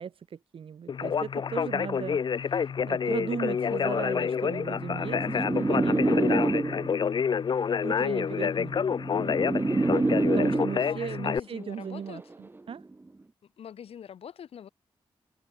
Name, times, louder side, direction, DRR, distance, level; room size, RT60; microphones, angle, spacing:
voice 1, 0.0-7.0 7.8-8.8 10.3-12.9, right 7 dB, 70° right, 1.6 m, -37 dB
Conversation, 0.9-11.4, left 6 dB, 50° left, 0.5 m, -28 dB
sound 1, 4.1-7.1 8.1-11.1 12.1-12.4, right 2 dB, 20° right, 0.9 m, -27 dB
voice 2, 10.9-12.2 13.4-14.7, left 8 dB, 80° left, 2.5 m, -44 dB
open air
cardioid pair, 80°, 10 cm